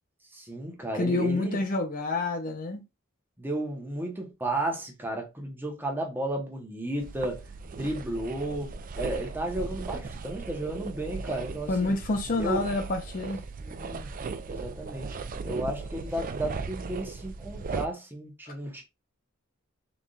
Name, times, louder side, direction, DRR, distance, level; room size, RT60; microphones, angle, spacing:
voice 1, 0.3-1.6 3.4-7.4 7.7-11.9 12.4-12.6 13.6-14.1 14.5-15.2 15.4-18.8, right 1 dB, 10° right, 1.0 m, -33 dB
voice 2, 0.9-2.8 11.7-13.4, left 2 dB, 40° left, 0.6 m, -28 dB
sound 1, 7.0-17.9, right 4 dB, 40° right, 0.4 m, -37 dB
4.0 x 3.4 x 2.4 m
head